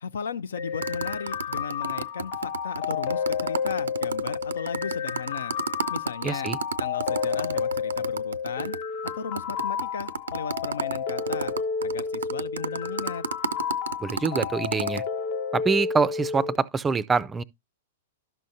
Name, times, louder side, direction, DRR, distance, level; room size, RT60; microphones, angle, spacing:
voice 1, 0.0-5.5 5.9-6.5 6.8-8.7 9.2-11.5 11.8-13.2, left 6 dB, 70° left, 0.5 m, -36 dB
sound 1, 0.6-16.6, left 6 dB, 50° left, 0.9 m, -31 dB
sound 2, 0.8-8.8 9.1-9.2 9.4-15.0, right 5 dB, 75° right, 0.5 m, -31 dB
voice 2, 6.2-6.6 14.0-15.0 15.5-17.4, right 4 dB, 15° right, 0.4 m, -25 dB
12.0 x 6.2 x 2.7 m
figure-of-eight pair, 105°, 0 cm